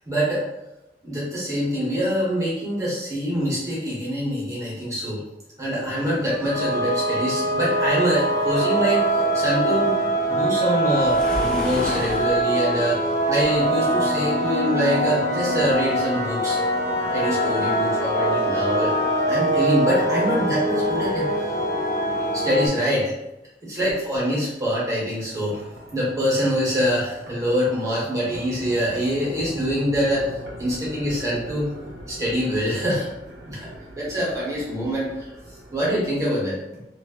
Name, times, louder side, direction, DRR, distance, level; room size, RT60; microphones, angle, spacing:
voice 1, 0.1-0.4 1.0-5.2 5.6-9.9 10.3-16.6 17.1-18.9 19.3-21.3 22.4-23.1 23.6-25.6 25.9-30.3 30.6-31.7 32.1-33.1 33.4-33.7 33.9-35.3 35.7-36.6, equal, 20° right, -7 dB, 1.2 m, -24 dB
sound 1, 5.7-22.7, right 1 dB, 20° left, 0.9 m, -23 dB
Waves surf, 10.9-12.4, equal, 5° left, 0.5 m, -31 dB
sound 2, 24.9-36.2, equal, 75° right, 0.6 m, -41 dB
3.0 x 2.4 x 2.9 m, 0.93 s
head